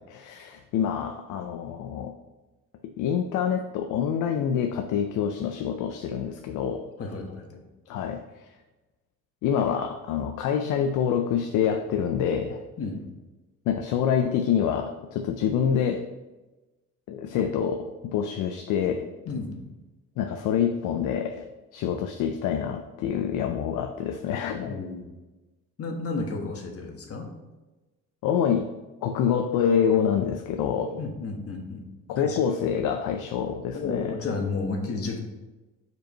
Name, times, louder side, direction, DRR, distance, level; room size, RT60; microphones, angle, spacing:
voice 1, 0.1-2.1 3.0-6.8 7.9-8.2 9.4-12.6 13.7-16.0 17.1-19.1 20.2-21.4 21.7-24.8 28.2-28.7 29.0-31.0 32.1-34.2, left 8 dB, 90° left, 6 dB, 0.5 m, -26 dB
voice 2, 7.0-7.6 12.8-13.0 19.2-19.5 24.6-25.0 25.8-27.3 31.0-31.8 32.2-32.4 33.7-35.2, left 3 dB, 50° left, 2 dB, 1.3 m, -32 dB
5.2 x 4.6 x 5.1 m, 1.1 s
cardioid pair, 90°, 30 cm